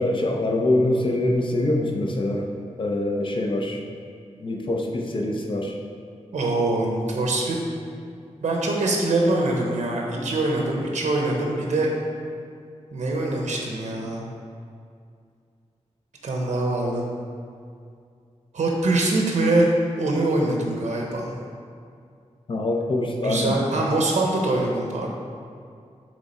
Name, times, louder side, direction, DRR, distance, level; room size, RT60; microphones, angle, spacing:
voice 1, 0.0-2.5 2.8-3.8 4.4-5.8 22.5-23.6, left 1 dB, 45° left, 2 dB, 0.6 m, -24 dB
voice 2, 6.3-7.6 8.4-11.9 12.9-14.2 16.2-17.0 18.5-19.7 20.0-21.3 23.2-25.1, right 2 dB, 85° right, 0 dB, 0.8 m, -23 dB
7.2 x 3.3 x 4.2 m, 2.3 s
wide cardioid pair, 150°, 12 cm